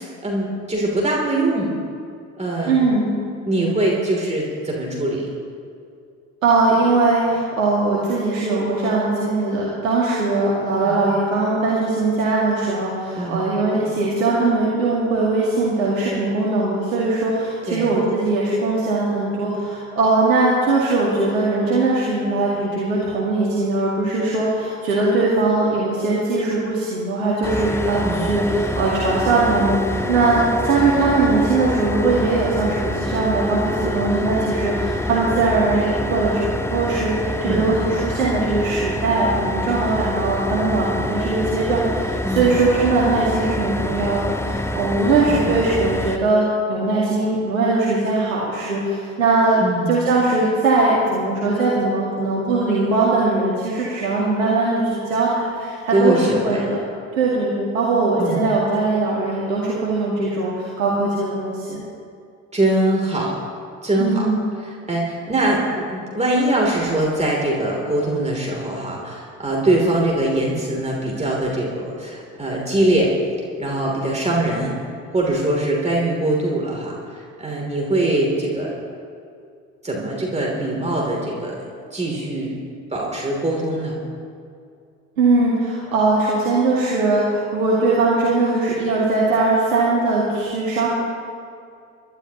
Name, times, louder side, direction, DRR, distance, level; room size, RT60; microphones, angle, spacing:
voice 1, 0.0-1.7 2.4-2.8 3.5-5.3 10.8-11.0 13.2-13.5 17.7-17.9 28.0-28.3 37.4-37.7 42.2-42.5 45.3-45.5 49.6-50.0 55.9-56.7 58.2-58.4 62.5-63.4 63.8-64.3 64.6-73.1 73.6-74.7 75.1-78.8 79.8-81.6 81.9-82.5 82.9-84.0, right 1 dB, 15° right, -2 dB, 2.9 m, -22 dB
voice 2, 2.6-3.1 6.4-49.6 49.9-56.8 57.1-61.8 64.0-64.4 85.2-90.9, right 3 dB, 80° right, -6 dB, 2.1 m, -20 dB
sound 1, 27.4-46.2, left 1 dB, 5° left, 0.6 m, -26 dB
25.0 x 12.5 x 2.9 m, 2.4 s
figure-of-eight pair, 55°, 39 cm